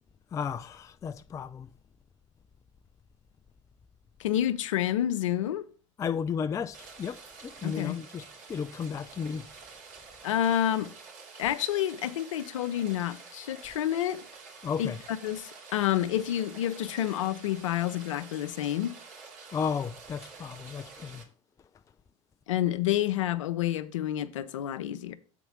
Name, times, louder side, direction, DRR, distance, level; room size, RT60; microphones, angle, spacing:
voice 1, 0.3-1.7 6.0-9.5 14.6-15.0 19.5-21.2, left 6 dB, 20° left, 0.4 m, -34 dB
voice 2, 4.2-5.7 7.6-8.0 10.2-10.9 11.4-14.2 14.8-18.9 22.5-25.2, left 12 dB, 80° left, 0.7 m, -29 dB
Rain, 6.7-21.2, right 4 dB, 55° right, 2.9 m, -49 dB
7.1 x 4.4 x 6.0 m
hypercardioid pair, 90°, 16 cm